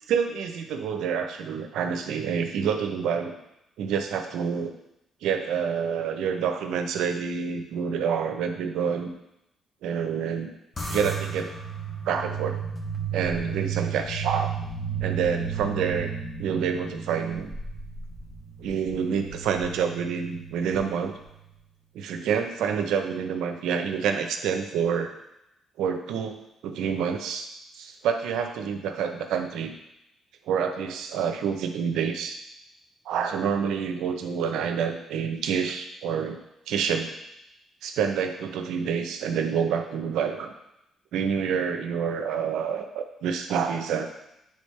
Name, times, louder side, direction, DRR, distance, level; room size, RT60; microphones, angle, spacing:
voice 1, 0.1-3.3 3.8-4.7 5.2-9.1 9.8-10.5 10.9-11.6 12.1-12.6 13.1-14.5 15.0-16.1 16.4-17.5 18.6-21.1 21.9-25.1 25.8-26.4 26.6-27.5 27.7-29.7 30.5-32.4 33.1-36.4 36.7-37.1 37.8-40.5 41.1-44.1, right 7 dB, 85° right, 6 dB, 0.6 m, -27 dB
sound 1, 10.8-21.4, right 6 dB, 25° left, 1.2 m, -34 dB
9.5 x 3.5 x 3.2 m, 0.85 s
cardioid pair, 90°, 0 cm